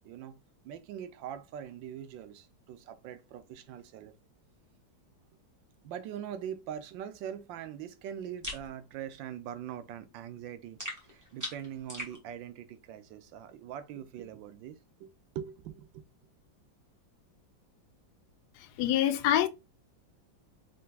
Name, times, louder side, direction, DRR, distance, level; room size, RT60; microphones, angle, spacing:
voice 1, 0.0-4.1 5.8-16.1, right 9 dB, 75° right, 1.3 m, -42 dB
sound 1, 8.4-8.7 10.8-12.2, left 1 dB, 10° right, 1.2 m, -39 dB
voice 2, 18.8-19.5, left 11 dB, 70° left, 0.9 m, -25 dB
4.4 x 3.8 x 2.3 m
omnidirectional pair, 2.1 m